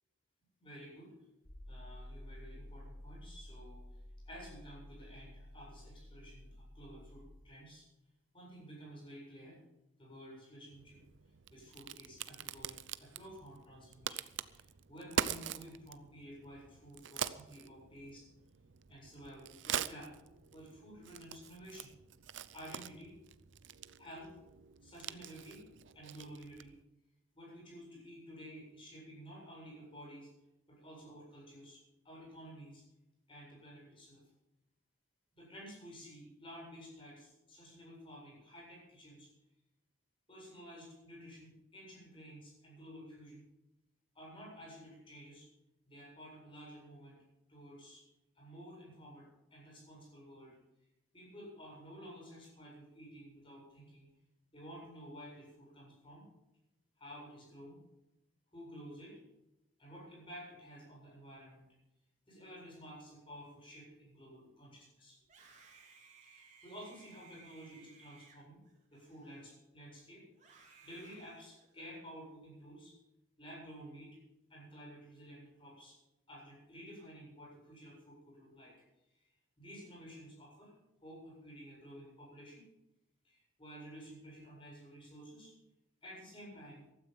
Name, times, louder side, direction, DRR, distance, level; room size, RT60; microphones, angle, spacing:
voice 1, 0.6-1.1 1.7-3.8 4.3-7.8 8.3-9.6 10.0-11.0 11.5-14.2 14.5-18.2 18.9-20.1 20.5-21.9 22.5-23.2 24.0-24.4 24.8-25.6 25.9-26.7 27.3-30.3 30.7-32.8 33.3-34.2 35.3-39.3 40.3-43.4 44.1-45.5 45.9-47.2 47.5-48.0 48.3-50.6 51.1-54.1 54.5-56.2 57.0-57.8 58.5-59.2 59.8-61.7 62.3-65.2 66.2-68.6 68.9-72.9 73.4-74.2 74.5-76.0 76.3-78.7 79.1-79.3 79.6-80.7 81.0-82.6 83.2-85.5 86.0-86.8, equal, 25° left, -3 dB, 7.8 m, -52 dB
sound 1, 1.4-7.4, left 1 dB, 60° left, 3.3 m, -52 dB
Crack, 10.7-26.8, right 8 dB, 70° right, 0.6 m, -44 dB
Screaming, 65.2-69.7 70.3-72.1, right 5 dB, 35° right, 3.3 m, -61 dB
15.5 x 13.0 x 5.6 m, 0.94 s
head